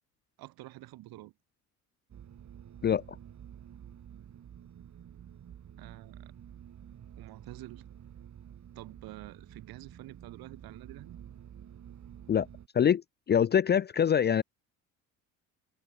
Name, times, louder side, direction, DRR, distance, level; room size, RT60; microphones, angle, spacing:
voice 1, 0.4-1.3 5.8-6.3 7.2-7.9 8.8-11.2, right 18 dB, 60° right, 4.0 m, -48 dB
sound 1, 2.1-12.7, right 9 dB, 40° right, 5.2 m, -50 dB
voice 2, 13.3-14.4, left 8 dB, 25° left, 0.6 m, -24 dB
figure-of-eight pair, 55°, 41 cm